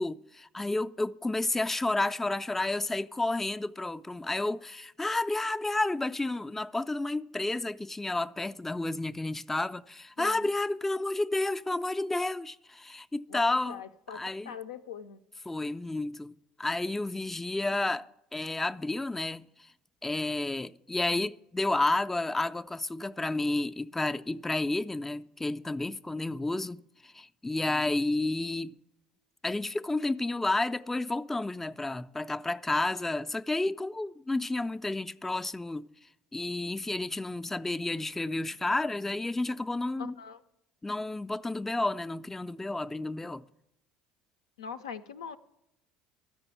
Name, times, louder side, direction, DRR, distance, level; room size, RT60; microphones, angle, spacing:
voice 1, 0.0-13.8 14.1-14.5 15.5-16.3 16.6-19.5 20.0-28.8 29.4-35.9 36.3-40.1 40.8-43.4, left 2 dB, 10° left, 0.3 m, -31 dB
voice 2, 10.2-10.5 13.3-15.2 17.6-17.8 40.0-40.4 44.6-45.4, left 7 dB, 80° left, 0.4 m, -42 dB
13.0 x 5.3 x 8.2 m
hypercardioid pair, 65°, 3 cm